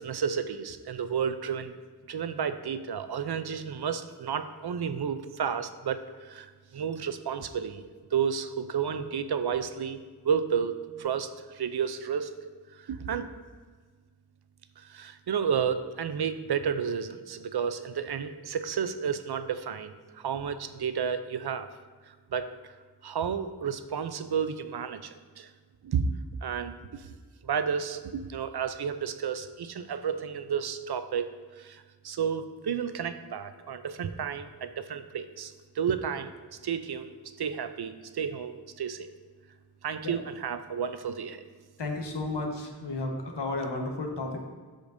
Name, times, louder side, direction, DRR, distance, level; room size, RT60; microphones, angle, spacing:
voice 1, 0.0-1.7 2.1-7.8 8.1-10.0 10.2-12.3 12.7-13.3 14.8-21.7 22.3-22.7 23.0-25.5 25.8-26.1 26.4-27.0 27.4-31.3 31.6-36.3 36.6-39.1 39.8-41.4, right 7 dB, 65° right, 11 dB, 0.6 m, -31 dB
voice 2, 41.8-44.5, left 2 dB, 80° left, 2 dB, 1.2 m, -33 dB
13.0 x 5.2 x 2.6 m, 1.5 s
wide cardioid pair, 70°, 41 cm